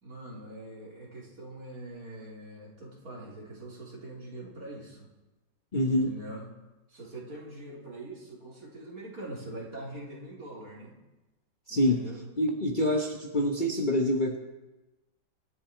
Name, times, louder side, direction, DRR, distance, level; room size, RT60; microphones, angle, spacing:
voice 1, 0.0-5.1 5.9-6.5 6.9-10.9 11.7-12.2, right 1 dB, 50° right, -4 dB, 4.0 m, -43 dB
voice 2, 5.7-6.1 11.7-12.1 12.4-14.4, left 1 dB, 30° left, 1 dB, 1.2 m, -26 dB
25.0 x 9.9 x 4.5 m, 1.1 s
omnidirectional pair, 1.9 m